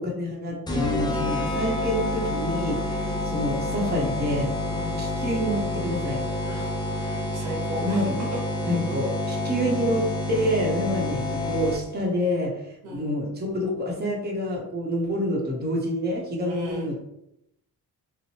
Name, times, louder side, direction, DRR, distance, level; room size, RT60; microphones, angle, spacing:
voice 1, 0.0-4.5 5.0-6.2 7.8-8.2 8.6-17.0, equal, 25° right, -2 dB, 0.9 m, -27 dB
sound 1, 0.7-12.1, left 1 dB, 10° left, 0.5 m, -28 dB
voice 2, 3.0-3.4 4.7-5.0 6.4-8.1 12.8-13.1 16.4-16.9, equal, 90° right, -2 dB, 1.1 m, -37 dB
2.7 x 2.1 x 3.0 m, 0.81 s
cardioid pair, 75°, 40 cm